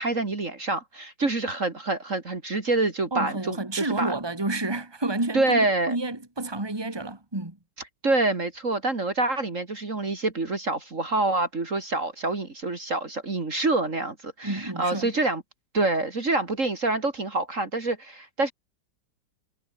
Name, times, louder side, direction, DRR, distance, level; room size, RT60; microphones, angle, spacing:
voice 1, 0.0-4.1 5.3-6.0 8.0-15.4 15.7-18.5, right 2 dB, 40° right, 2.9 m, -26 dB
voice 2, 3.1-7.6 14.4-15.1, right 2 dB, 10° right, 2.9 m, -30 dB
omnidirectional pair, 2.1 m